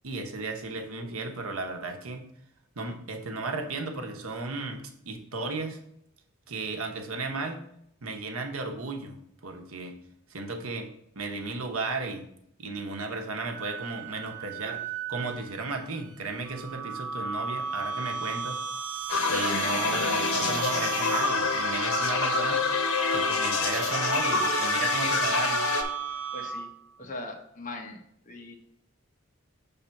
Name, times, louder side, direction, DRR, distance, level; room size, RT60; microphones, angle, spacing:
voice 1, 0.0-2.2 2.8-5.8 6.5-7.6 8.0-10.0 10.3-10.9 11.1-12.3 12.6-14.8 15.1-18.6 19.3-22.7 23.1-25.6, right 3 dB, 80° right, 4 dB, 1.0 m, -34 dB
Wind instrument woodwind instrument, 13.5-16.9, right 13 dB, 35° right, 1.2 m, -40 dB
sound 1, 16.4-26.8, right 5 dB, 60° right, 0.7 m, -34 dB
sound 2, 19.1-25.8, left 4 dB, 85° left, 0.9 m, -27 dB
voice 2, 26.3-26.7 27.0-28.0 28.2-28.6, left 2 dB, 35° left, 2 dB, 1.0 m, -40 dB
5.7 x 3.6 x 5.7 m, 0.73 s
head